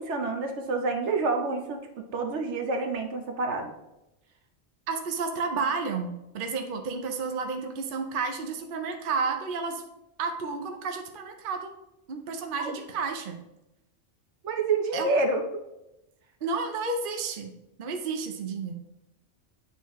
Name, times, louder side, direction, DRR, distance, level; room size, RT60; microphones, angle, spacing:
voice 1, 0.0-3.7 12.6-12.7 14.4-15.4, right 3 dB, 75° right, 4 dB, 1.2 m, -28 dB
voice 2, 4.9-9.8 10.2-11.7 12.1-13.4 14.9-15.2 16.4-17.5 17.8-18.7, right 4 dB, 55° right, 5 dB, 0.8 m, -31 dB
9.6 x 4.1 x 3.0 m, 0.91 s
omnidirectional pair, 1.2 m